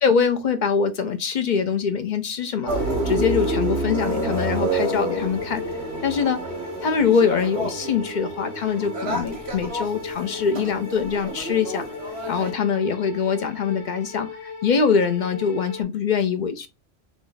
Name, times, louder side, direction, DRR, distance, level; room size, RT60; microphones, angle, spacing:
voice 1, 0.0-5.6 6.0-6.4 6.8-11.9 12.3-16.7, left 6 dB, 55° left, 0.6 m, -23 dB
sound 1, 2.6-15.8, left 5 dB, 30° left, 0.9 m, -37 dB
sound 2, 2.7-12.5, right 2 dB, 75° right, 1.6 m, -29 dB
3.6 x 3.1 x 3.8 m
omnidirectional pair, 1.1 m